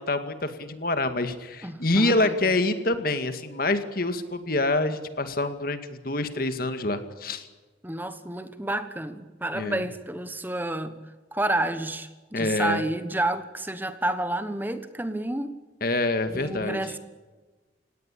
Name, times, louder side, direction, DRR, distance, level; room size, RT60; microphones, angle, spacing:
voice 1, 0.0-7.5 9.5-9.8 12.3-12.8 15.8-16.8, left 2 dB, 50° left, 9 dB, 2.2 m, -26 dB
voice 2, 1.6-2.3 7.8-11.0 11.3-15.5 16.3-17.0, right 1 dB, 10° right, 10 dB, 1.2 m, -30 dB
30.0 x 17.5 x 8.7 m, 1.2 s
head